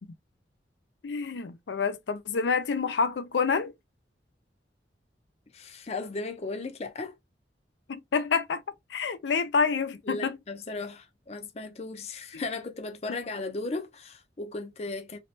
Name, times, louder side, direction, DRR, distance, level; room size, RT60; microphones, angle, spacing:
voice 1, 1.0-3.7 7.9-8.6 8.9-10.4 12.3-12.5, left 5 dB, 85° left, 0.5 m, -28 dB
voice 2, 5.5-7.2 10.0-15.2, left 3 dB, 35° left, 0.5 m, -36 dB
3.0 x 2.9 x 3.1 m
head